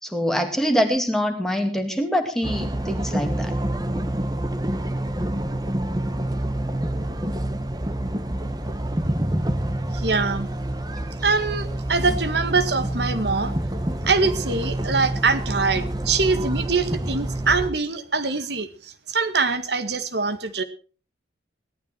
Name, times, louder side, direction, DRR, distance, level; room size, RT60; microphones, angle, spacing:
voice 1, 0.0-3.5, equal, ahead, 4 dB, 2.3 m, -24 dB
sound 1, 2.4-17.7, right 1 dB, 20° right, 1.2 m, -27 dB
voice 2, 9.9-10.5 11.2-13.6 14.0-20.6, right 4 dB, 60° right, 11 dB, 1.9 m, -23 dB
17.5 x 12.5 x 4.5 m, 0.38 s
head